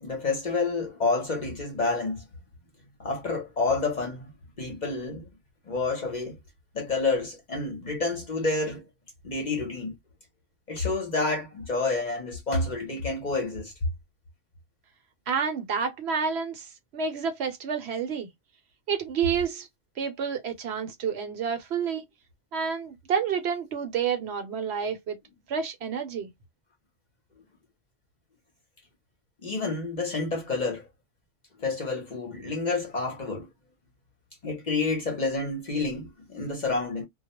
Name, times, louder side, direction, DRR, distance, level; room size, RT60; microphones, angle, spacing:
voice 1, 0.0-2.2 3.0-4.3 4.6-5.3 5.7-6.4 6.7-8.9 9.2-9.9 10.7-13.7 29.4-30.9 31.6-33.5 34.4-37.1, left 3 dB, 45° left, 0.7 m, -29 dB
voice 2, 15.3-18.3 18.9-19.7 20.0-22.0 22.5-25.2 25.5-26.3, right 6 dB, 65° right, 0.9 m, -29 dB
2.2 x 2.1 x 2.9 m
omnidirectional pair, 1.2 m